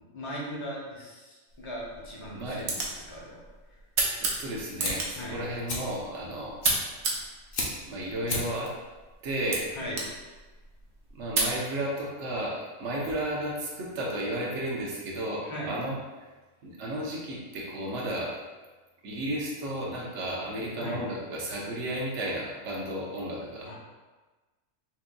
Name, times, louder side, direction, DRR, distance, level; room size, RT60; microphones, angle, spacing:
voice 1, 0.1-3.4 5.1-5.4 9.7-10.0 15.4-15.7 20.8-21.0 23.6-23.7, equal, 25° left, -4 dB, 0.8 m, -38 dB
sound 1, 1.5-11.6, right 3 dB, 85° right, 1.2 m, -34 dB
voice 2, 2.3-2.6 4.2-6.6 7.8-8.7 9.2-9.7 11.1-16.0 16.6-18.4 19.0-23.7, right 1 dB, 65° right, -4 dB, 1.1 m, -33 dB
Fire, 4.5-14.8, left 2 dB, 50° left, 0.8 m, -38 dB
5.9 x 2.7 x 2.2 m, 1.2 s
omnidirectional pair, 1.4 m